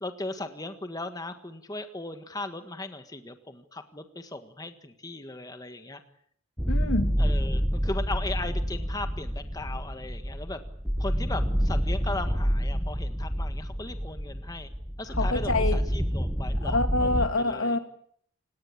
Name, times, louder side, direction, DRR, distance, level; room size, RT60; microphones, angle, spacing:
voice 1, 0.0-6.0 7.2-10.6 11.0-14.7 15.0-17.8, left 2 dB, 20° left, 8 dB, 1.6 m, -37 dB
sound 1, 6.6-17.3, equal, ahead, 1.3 m, -28 dB
voice 2, 6.7-7.1 15.2-15.8 16.6-17.8, left 2 dB, 75° left, 7 dB, 2.8 m, -26 dB
29.5 x 18.0 x 8.7 m, 0.65 s
head